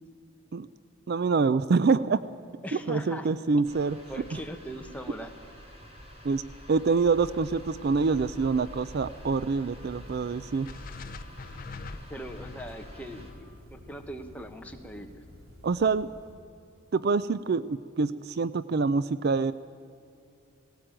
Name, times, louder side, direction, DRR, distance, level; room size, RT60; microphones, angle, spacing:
voice 1, 1.1-2.2 2.7-4.0 6.2-6.4 6.7-10.7 15.6-16.1 16.9-19.5, right 4 dB, 50° right, 16 dB, 0.4 m, -26 dB
voice 2, 2.6-3.3 4.1-5.3 12.1-15.2, equal, 5° left, 4 dB, 1.2 m, -40 dB
sound 1, 3.6-13.3, equal, 30° right, 3.0 m, -47 dB
sound 2, 6.8-16.4, equal, 80° right, 3.3 m, -51 dB
sound 3, 10.6-14.8, left 4 dB, 40° left, 0.5 m, -45 dB
18.0 x 17.5 x 8.9 m, 2.6 s
head